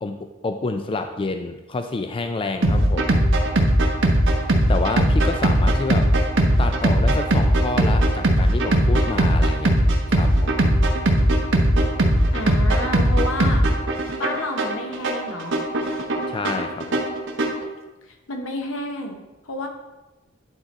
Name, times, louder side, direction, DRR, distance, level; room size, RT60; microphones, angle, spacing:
voice 1, 0.0-3.2 4.7-6.1 6.6-9.7 10.1-10.5 16.3-17.0, left 3 dB, 25° left, 7 dB, 0.3 m, -28 dB
sound 1, 2.6-17.6, right 1 dB, 65° right, 1.0 m, -19 dB
voice 2, 12.3-13.6 14.2-15.6 18.1-19.7, left 2 dB, 75° left, 3 dB, 1.1 m, -30 dB
10.5 x 3.8 x 4.2 m, 1.1 s
head